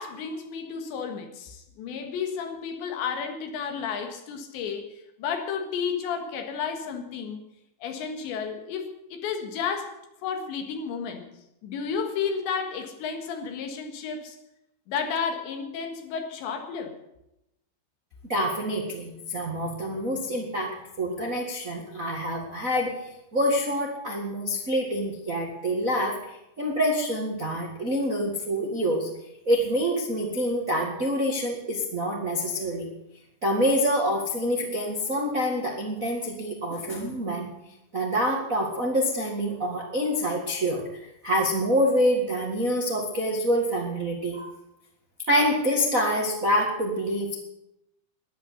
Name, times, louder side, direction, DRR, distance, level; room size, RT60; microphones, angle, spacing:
voice 1, 0.0-7.4 7.8-11.3 11.6-14.4 14.9-17.0, left 6 dB, 80° left, 5 dB, 3.9 m, -32 dB
voice 2, 18.3-20.7 21.0-22.9 23.3-29.1 29.4-32.9 33.4-37.5 37.9-44.5 45.3-47.4, equal, 65° right, -1 dB, 0.8 m, -26 dB
13.0 x 11.0 x 8.3 m, 0.86 s
omnidirectional pair, 5.1 m